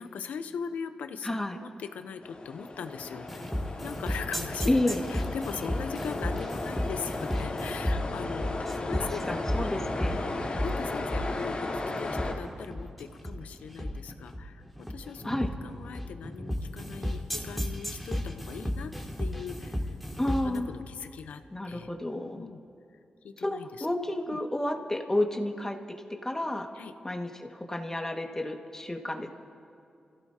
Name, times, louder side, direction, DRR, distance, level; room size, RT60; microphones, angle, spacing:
voice 1, 0.0-3.5 3.8-8.6 8.9-9.4 10.1-10.3 10.6-11.7 12.0-18.9 19.2-20.0 20.2-22.6 23.2-23.9 24.3-24.4 26.8-26.9, left 6 dB, 85° left, 9 dB, 0.7 m, -40 dB
voice 2, 1.2-1.6 4.7-5.0 9.0-10.2 15.2-15.5 20.2-20.7 21.5-22.5 23.4-26.0 26.2-26.7 27.0-29.3, left 1 dB, 20° left, 3 dB, 1.8 m, -31 dB
sound 1, 2.2-12.3, left 2 dB, 55° left, 3.0 m, -35 dB
sound 2, 3.3-20.6, equal, ahead, 2.4 m, -34 dB
28.5 x 15.5 x 2.9 m, 2.5 s
supercardioid pair, 45°, 3 cm